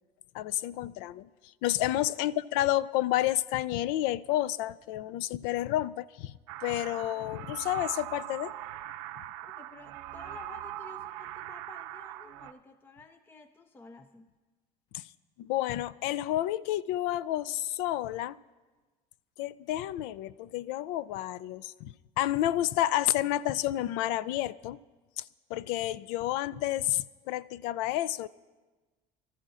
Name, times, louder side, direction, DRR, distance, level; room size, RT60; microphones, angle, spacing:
voice 1, 0.3-1.3 1.6-6.3 6.6-8.5 14.9-15.0 15.4-18.4 19.4-24.8 25.2-25.3 25.5-28.3, left 14 dB, 80° left, 0.4 m, -30 dB
sound 1, 6.5-12.5, right 13 dB, 85° right, 0.6 m, -41 dB
voice 2, 9.4-14.3, left 4 dB, 15° left, 0.4 m, -52 dB
24.0 x 13.5 x 2.5 m
cardioid pair, 140°, 15 cm